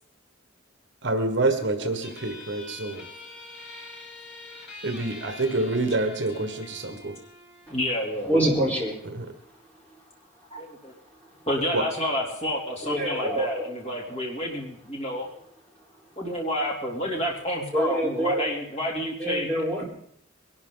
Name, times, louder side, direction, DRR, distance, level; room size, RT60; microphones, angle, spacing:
voice 1, 1.0-3.0 4.8-7.1 9.1-9.3 11.7-11.8, right 2 dB, 65° right, 5 dB, 1.5 m, -27 dB
voice 2, 1.8-2.3 7.7-8.5 10.5-10.9 11.5-15.3 16.2-19.5, equal, 30° left, -2 dB, 3.1 m, -30 dB
sound 1, 2.0-9.0, left 2 dB, 55° left, 4.5 m, -45 dB
voice 3, 8.3-9.0 12.8-13.7 17.7-18.5 19.2-19.8, right 1 dB, 10° left, -4 dB, 4.0 m, -25 dB
22.0 x 12.0 x 3.9 m, 0.64 s
head